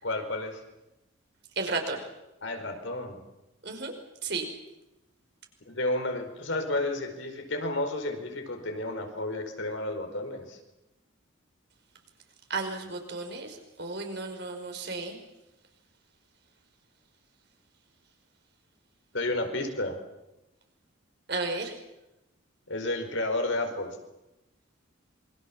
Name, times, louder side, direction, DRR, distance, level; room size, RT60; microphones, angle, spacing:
voice 1, 0.0-0.6 2.4-3.2 5.7-10.6 19.1-20.0 22.7-24.0, left 2 dB, 65° left, 5 dB, 4.9 m, -31 dB
voice 2, 1.6-2.0 3.6-3.9 4.2-4.5 12.5-15.2 21.3-21.8, right 3 dB, 55° right, 4 dB, 5.4 m, -33 dB
27.5 x 24.5 x 7.4 m, 0.94 s
head